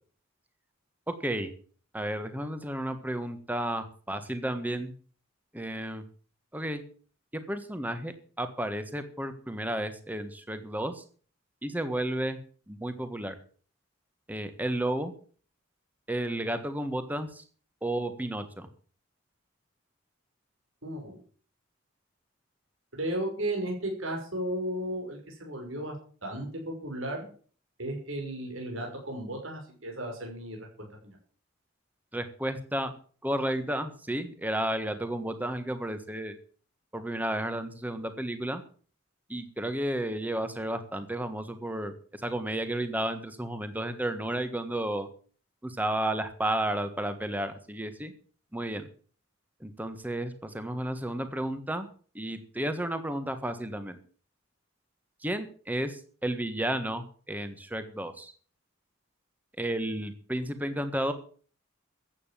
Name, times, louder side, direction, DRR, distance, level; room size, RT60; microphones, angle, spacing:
voice 1, 1.1-1.5 1.9-4.9 5.5-6.0 6.5-6.8 7.3-11.0 11.6-12.4 12.7-13.3 14.3-15.1 16.1-17.4 17.8-18.7 32.1-32.9 33.2-36.4 36.9-38.6 39.3-45.1 45.6-48.1 48.5-48.9 49.6-51.9 52.1-54.0 55.2-58.3 59.6-61.1, right 1 dB, 10° right, 9 dB, 1.5 m, -32 dB
voice 2, 20.8-21.2 22.9-26.0 26.2-27.2 27.8-30.7 31.0-31.2, right 1 dB, 65° right, 1 dB, 5.9 m, -34 dB
14.5 x 8.9 x 7.5 m, 0.44 s
head